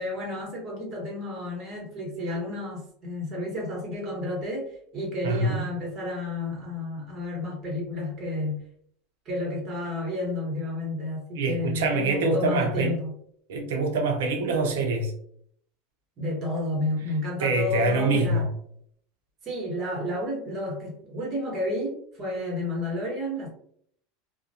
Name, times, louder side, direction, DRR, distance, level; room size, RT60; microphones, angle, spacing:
voice 1, 0.0-8.6 9.2-13.2 16.2-18.5 19.4-23.5, left 2 dB, 40° right, 1.2 m, -31 dB
voice 2, 5.2-5.6 11.4-13.0 13.5-15.1 17.4-18.5, right 3 dB, 85° right, 0.6 m, -25 dB
2.4 x 2.1 x 2.7 m
supercardioid pair, 115°, 0 cm